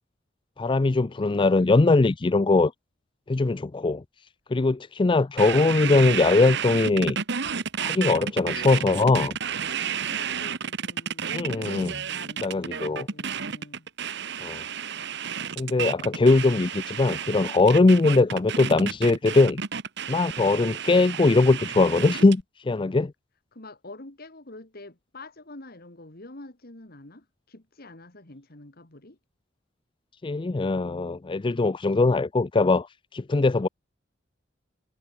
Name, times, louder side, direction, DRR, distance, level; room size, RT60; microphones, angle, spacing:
voice 1, 0.6-2.7 3.3-4.0 4.5-7.2 7.8-9.4 11.3-11.9 12.4-13.1 14.4-14.6 15.6-19.6 20.1-23.1 30.2-33.7, left 3 dB, 25° left, 0.4 m, -21 dB
sound 1, 5.4-22.4, right 7 dB, 65° right, 1.5 m, -31 dB
voice 2, 9.8-13.9 23.5-29.2, left 2 dB, 55° left, 2.7 m, -46 dB
head